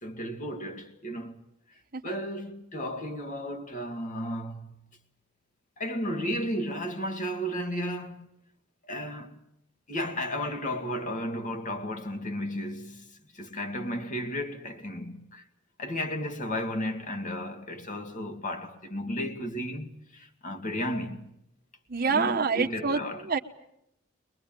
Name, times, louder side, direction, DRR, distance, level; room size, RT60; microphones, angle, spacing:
voice 1, 0.0-1.4 2.0-4.9 5.8-8.3 8.8-9.4 9.9-15.4 15.8-21.3 22.1-23.2, equal, 40° left, 2.3 m, -34 dB
voice 2, 21.9-23.4, right 5 dB, 50° right, 1.1 m, -27 dB
22.5 x 22.5 x 8.9 m
head